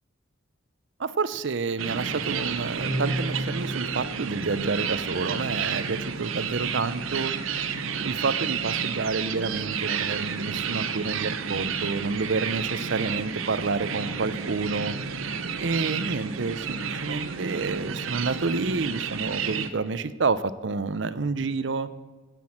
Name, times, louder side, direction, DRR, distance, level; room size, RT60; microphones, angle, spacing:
voice 1, 1.0-7.3 8.0-15.0 15.6-21.9, right 4 dB, 60° right, 14 dB, 0.6 m, -29 dB
sound 1, 1.8-19.7, right 6 dB, 90° right, 0.9 m, -31 dB
sound 2, 2.8-5.4, right 1 dB, 35° right, 4.3 m, -33 dB
16.5 x 6.1 x 7.2 m, 1.5 s
head